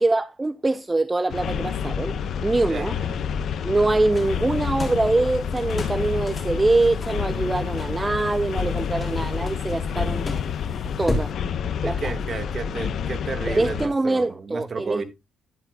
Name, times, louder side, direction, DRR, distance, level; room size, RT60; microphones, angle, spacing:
voice 1, 0.0-2.2 2.4-3.0 3.6-10.3 10.8-11.3 11.8-12.1 13.5-15.0, right 2 dB, 20° right, 0.4 m, -23 dB
sound 1, 1.3-13.9, left 7 dB, 65° left, 0.7 m, -28 dB
voice 2, 2.7-3.3 11.8-15.0, right 4 dB, 40° right, 1.5 m, -32 dB
sound 2, 4.1-11.3, left 1 dB, 20° left, 3.2 m, -36 dB
11.5 x 9.7 x 2.2 m
cardioid pair, 90°, 0 cm